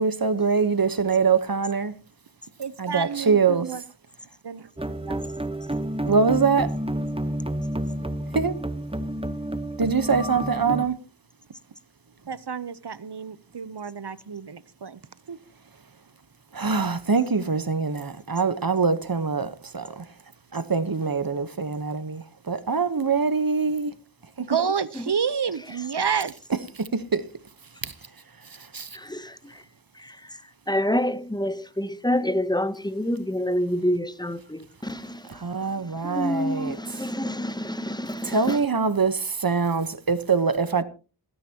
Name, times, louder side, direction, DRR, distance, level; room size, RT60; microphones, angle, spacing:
voice 1, 0.0-1.9 2.8-3.7 6.1-6.7 8.3-8.5 9.8-11.0 16.5-20.0 20.5-23.9 24.4-24.5 26.8-27.2 27.8-27.9 28.7-28.9 35.4-36.8 38.2-40.8, right 5 dB, 55° right, 1.2 m, -24 dB
voice 2, 2.6-3.8 4.4-4.7 5.0-5.2 12.3-15.0 15.3-15.4 24.5-26.3, right 6 dB, 75° right, 0.9 m, -29 dB
sound 1, 4.8-10.9, right 1 dB, 15° right, 1.0 m, -30 dB
voice 3, 28.9-29.6 29.9-38.6, left 1 dB, 10° left, 0.9 m, -28 dB
28.0 x 10.0 x 2.9 m
wide cardioid pair, 50°, 41 cm